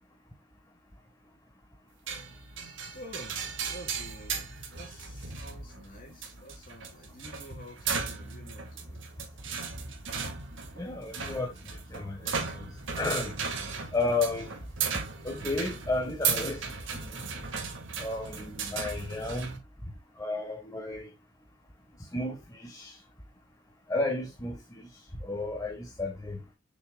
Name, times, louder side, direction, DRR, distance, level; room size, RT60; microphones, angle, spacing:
sound 1, 2.1-19.6, right 5 dB, 75° right, 1.7 m, -36 dB
voice 1, 2.6-4.4 4.7-9.0, equal, 45° left, 3.1 m, -49 dB
voice 2, 10.7-11.5 11.9-12.2 12.5-12.7 13.0-13.3 13.9-14.5 15.2-16.7 17.0-17.2 18.0-19.6 20.2-21.1 22.1-22.9 23.9-24.8 25.2-26.4, left 2 dB, 20° left, 1.3 m, -32 dB
6.9 x 6.0 x 2.2 m
head